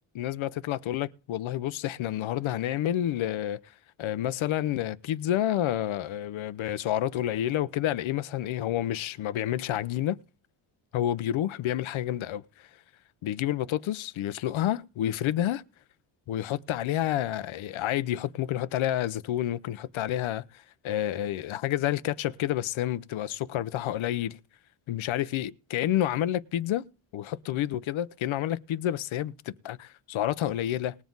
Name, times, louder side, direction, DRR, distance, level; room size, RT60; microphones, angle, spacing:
voice 1, 0.1-3.6 4.0-10.2 10.9-12.7 13.2-15.6 16.3-24.4 24.9-26.8 27.1-31.0, left 12 dB, 75° left, 0.9 m, -29 dB
20.0 x 7.3 x 3.9 m
cardioid pair, 90°, 47 cm